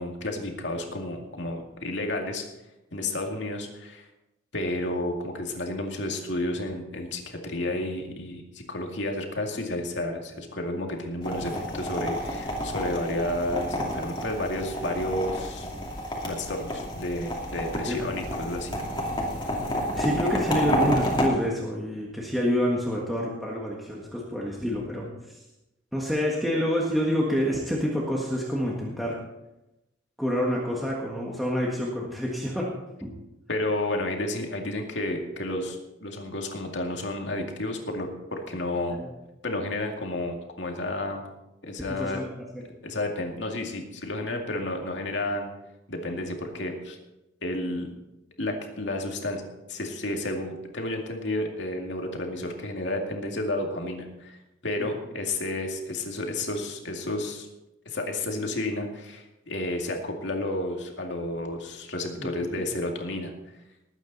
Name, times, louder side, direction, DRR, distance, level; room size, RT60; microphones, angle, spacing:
voice 1, 0.0-2.5 2.9-4.1 4.5-15.7 16.3-18.8 33.5-39.0 39.4-41.2 41.6-42.2 42.8-45.5 45.9-47.0 47.4-47.9 48.4-49.4 49.7-54.4 54.6-57.5 57.9-63.3, left 1 dB, 70° left, 2 dB, 2.3 m, -31 dB
sound 1, 11.2-21.3, equal, 25° left, 2.6 m, -30 dB
voice 2, 17.8-18.1 20.0-25.4 25.9-29.2 30.2-32.7 33.0-33.1 38.9-39.1 41.9-42.4 44.3-44.4 54.8-54.9 62.2-62.3 62.6-62.7, equal, ahead, -4 dB, 1.6 m, -28 dB
20.0 x 9.0 x 4.1 m, 0.94 s
head